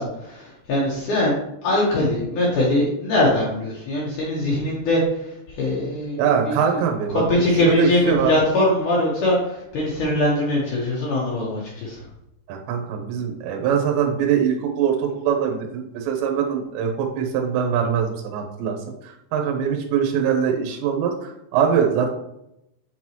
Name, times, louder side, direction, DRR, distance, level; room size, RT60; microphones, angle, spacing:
voice 1, 0.0-5.0 5.6-6.8 7.1-12.0, left 1 dB, 80° left, -5 dB, 1.8 m, -22 dB
voice 2, 6.2-8.3 12.5-18.8 19.3-22.1, right 7 dB, 75° right, 2 dB, 3.0 m, -22 dB
8.7 x 4.0 x 3.0 m, 0.83 s
omnidirectional pair, 5.5 m